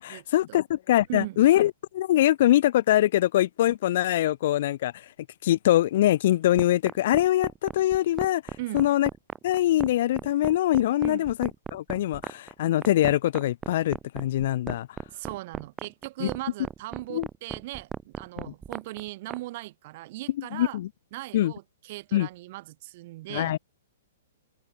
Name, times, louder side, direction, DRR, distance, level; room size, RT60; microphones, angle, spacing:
voice 1, 0.0-4.9 5.4-8.4 8.7-9.1 9.4-14.9 16.2-16.3 17.1-17.3 18.4-18.5 20.5-20.9 21.3-21.5 22.1-22.3 23.3-23.6, left 13 dB, 50° left, 2.5 m, -23 dB
sound 1, 6.6-19.4, right 7 dB, 15° right, 1.9 m, -35 dB
voice 2, 15.1-20.8 21.1-23.6, right 18 dB, 45° right, 6.7 m, -38 dB
open air
figure-of-eight pair, 115°, 0 cm